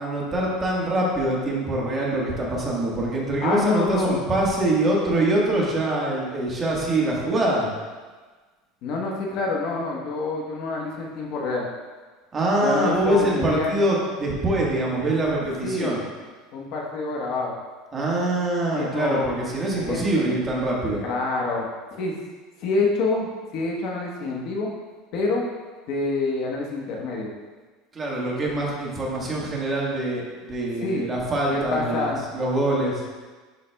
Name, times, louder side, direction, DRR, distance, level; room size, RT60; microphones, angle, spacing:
voice 1, 0.0-7.7 12.3-16.0 17.9-21.0 27.9-33.0, right 1 dB, 25° right, -4 dB, 1.4 m, -24 dB
voice 2, 3.4-4.2 8.8-11.7 12.6-13.8 15.6-15.9 16.5-17.5 18.7-19.3 19.7-20.3 21.0-22.1 22.6-24.7 25.1-25.5 25.9-27.3 30.8-31.1 31.5-32.2, left 3 dB, 55° left, -1 dB, 1.0 m, -27 dB
10.5 x 4.2 x 2.3 m, 1.4 s
supercardioid pair, 135°, 0 cm